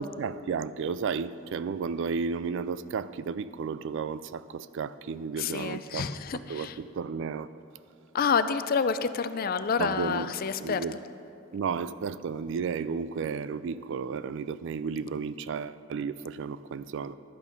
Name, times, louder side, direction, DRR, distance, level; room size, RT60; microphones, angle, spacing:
voice 1, 0.0-7.5 9.8-10.3 10.6-10.9 11.5-17.1, right 5 dB, 65° right, 0.3 m, -33 dB
voice 2, 5.4-6.8 8.1-10.8, left 5 dB, 45° left, 0.4 m, -28 dB
11.5 x 8.4 x 5.3 m
head